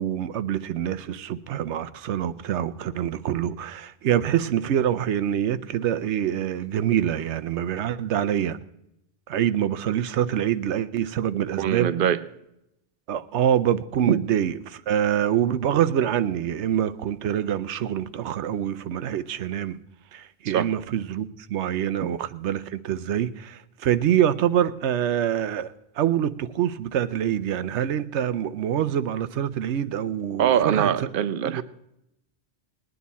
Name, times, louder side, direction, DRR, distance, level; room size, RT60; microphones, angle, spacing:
voice 1, 0.0-8.6 9.3-11.9 13.1-19.8 20.1-30.9 31.4-31.6, right 10 dB, 85° right, 0.9 m, -25 dB
voice 2, 11.3-12.2 14.1-14.2 20.5-20.7 30.4-31.6, right 9 dB, 55° right, 0.8 m, -23 dB
20.0 x 9.5 x 4.1 m
omnidirectional pair, 1.1 m